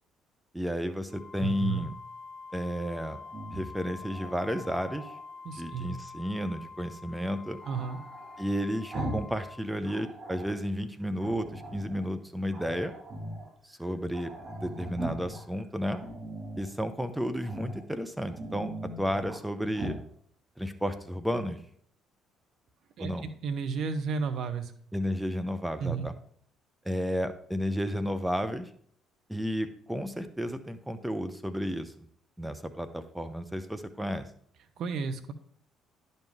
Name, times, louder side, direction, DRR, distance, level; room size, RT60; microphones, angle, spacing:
voice 1, 0.5-1.9 2.5-3.2 3.5-5.2 5.6-7.6 8.4-12.9 13.6-14.3 14.6-16.0 16.6-18.7 19.0-20.0 20.6-21.6 23.0-23.2 24.9-26.1 26.8-28.7 29.3-31.9 32.4-34.3, equal, 5° right, 9 dB, 0.7 m, -32 dB
Wind instrument woodwind instrument, 1.1-9.7, left 4 dB, 40° left, 0.8 m, -46 dB
voice 2, 1.4-1.9 5.4-6.0 7.7-8.0 23.0-24.7 25.8-26.1 34.8-35.3, right 6 dB, 60° right, 9 dB, 0.8 m, -33 dB
Growling, 3.2-5.2 7.6-9.4 9.7-10.6 11.2-12.1 12.5-13.5 13.8-13.9 14.1-15.4 15.9-16.7 17.4-17.8 18.2-19.4 19.7-20.0, right 1 dB, 40° right, 1.9 m, -40 dB
10.5 x 5.4 x 3.5 m, 0.62 s
hypercardioid pair, 50°, 0 cm